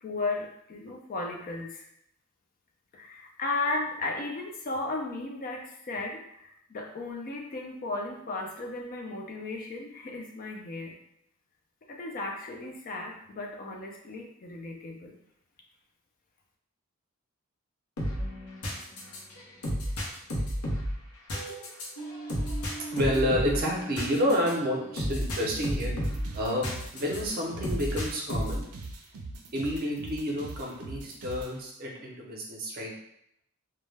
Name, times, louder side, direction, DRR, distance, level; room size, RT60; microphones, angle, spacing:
voice 1, 0.0-1.9 2.9-11.0 11.9-15.2, left 2 dB, 40° left, 0 dB, 0.3 m, -35 dB
sound 1, 18.0-27.2 27.6-28.7, equal, 85° left, 0.7 m, -32 dB
voice 2, 22.9-25.9 26.3-26.7 26.9-28.6 29.5-32.9, equal, 40° right, -2 dB, 0.6 m, -29 dB
sound 2, 25.0-31.5, right 3 dB, 90° right, 0.4 m, -42 dB
2.2 x 2.1 x 3.2 m, 0.75 s
head